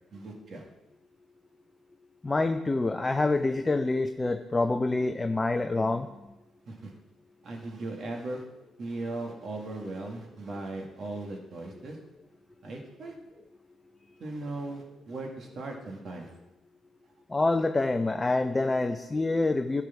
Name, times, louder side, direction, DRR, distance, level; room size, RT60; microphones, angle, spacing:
voice 1, 0.1-0.7 6.7-6.9 7.4-8.4 8.8-12.0 12.6-13.1 14.2-16.4, right 2 dB, 55° right, 1 dB, 2.1 m, -38 dB
voice 2, 2.2-6.1 17.3-19.8, left 2 dB, 20° left, 6 dB, 0.5 m, -26 dB
12.5 x 4.9 x 5.9 m, 0.98 s
cardioid pair, 90°, 0 cm